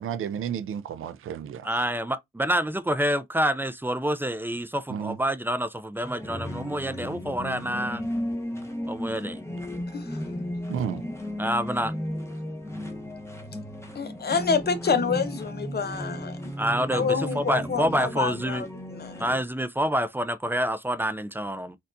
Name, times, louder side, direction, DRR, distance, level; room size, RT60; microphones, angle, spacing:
voice 1, 0.0-1.7 4.9-5.2 10.7-11.0, right 8 dB, 80° right, 0.4 m, -32 dB
voice 2, 1.6-8.0 8.9-9.4 11.4-11.9 16.6-18.7 19.2-21.8, equal, 10° right, 0.4 m, -27 dB
sound 1, 6.0-19.4, equal, 15° left, 0.9 m, -34 dB
voice 3, 13.9-16.5 16.9-19.3, left 5 dB, 50° left, 0.7 m, -28 dB
4.2 x 2.4 x 2.6 m
cardioid pair, 65°, 21 cm